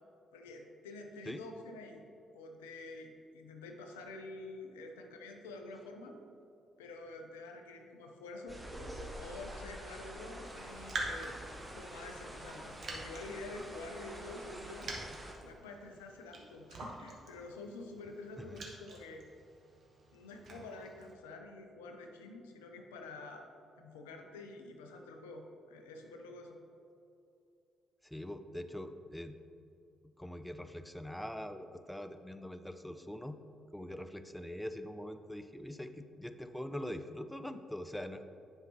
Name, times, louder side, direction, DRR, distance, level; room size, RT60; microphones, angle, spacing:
voice 1, 0.3-2.0 2.3-6.2 6.8-8.6 9.2-14.9 15.4-19.2 20.1-23.5 23.8-26.6, left 2 dB, 75° left, 4 dB, 0.6 m, -48 dB
sound 1, 8.5-15.3, right 1 dB, 15° right, 1.3 m, -47 dB
Raindrop, 10.5-21.1, right 2 dB, 50° right, 1.3 m, -47 dB
voice 2, 28.0-29.4 30.0-33.4 33.7-38.2, left 1 dB, 5° left, 9 dB, 0.4 m, -43 dB
10.0 x 5.6 x 2.9 m, 2.6 s
figure-of-eight pair, 40°, 0 cm